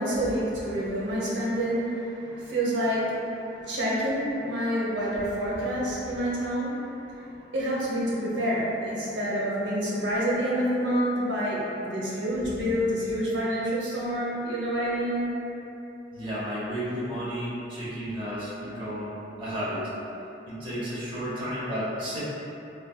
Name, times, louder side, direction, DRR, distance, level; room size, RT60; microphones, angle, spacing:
voice 1, 0.0-15.3, equal, 85° right, -7 dB, 0.7 m, -28 dB
voice 2, 16.1-19.8 20.5-22.2, equal, 30° right, -10 dB, 0.8 m, -33 dB
3.3 x 2.2 x 2.2 m, 2.9 s
head